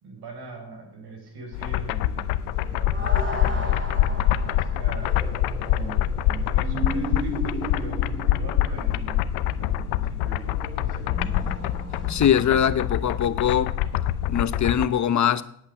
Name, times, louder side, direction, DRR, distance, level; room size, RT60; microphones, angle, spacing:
voice 1, 0.0-5.2 5.7-11.5, right 3 dB, 70° right, 5.0 m, -42 dB
sound 1, 1.5-14.9, left 12 dB, 85° left, 0.7 m, -25 dB
sound 2, 2.5-13.6 14.3-14.4, right 1 dB, 30° right, 4.9 m, -36 dB
voice 2, 12.1-13.7 14.3-15.4, left 9 dB, 45° left, 1.0 m, -22 dB
8.4 x 8.4 x 8.7 m
supercardioid pair, 55°, 40 cm